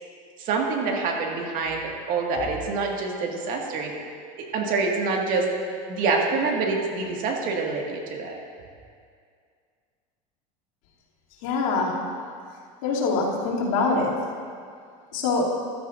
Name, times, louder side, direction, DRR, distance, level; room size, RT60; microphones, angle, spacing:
voice 1, 0.4-3.9 4.4-5.5 5.9-8.3, right 4 dB, 50° right, 0 dB, 1.9 m, -26 dB
voice 2, 11.4-11.9 12.8-14.1 15.1-15.5, left 3 dB, 75° left, -6 dB, 2.9 m, -24 dB
14.5 x 12.5 x 2.6 m, 2.2 s
supercardioid pair, 120°, 18 cm